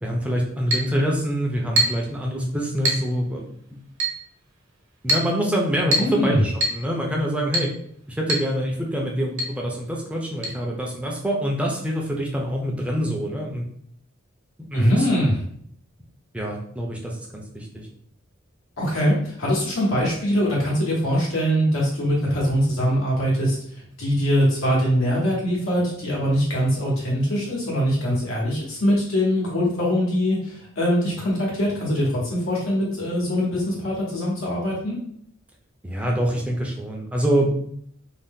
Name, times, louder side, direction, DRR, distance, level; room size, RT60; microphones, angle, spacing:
voice 1, 0.0-3.8 5.0-7.7 8.2-13.6 14.7-15.1 16.3-17.9 35.8-37.5, equal, 5° right, -1 dB, 0.4 m, -25 dB
Chink clink, 0.7-0.9 1.8-2.1 2.8-3.1 4.0-4.2 5.1-5.3 5.9-6.2 6.6-6.8 7.5-7.7 8.3-8.5 8.8-8.9 9.4-9.5 10.4-10.5, right 1 dB, 65° right, 0.7 m, -23 dB
voice 2, 6.0-6.4 14.7-15.4 18.8-23.6 24.0-35.0, equal, 85° left, -4 dB, 1.2 m, -22 dB
2.6 x 2.1 x 3.5 m, 0.65 s
head